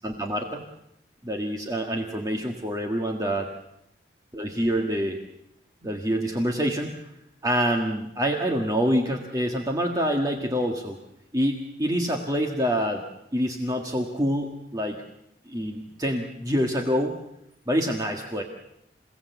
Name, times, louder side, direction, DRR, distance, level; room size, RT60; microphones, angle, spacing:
voice 1, 0.0-0.6 1.2-3.5 4.3-5.2 5.8-7.1 7.4-11.0 11.3-13.0 13.3-15.0 15.5-17.1 17.7-18.4, equal, 20° right, 2 dB, 1.7 m, -26 dB
28.5 x 17.5 x 8.1 m, 0.80 s
head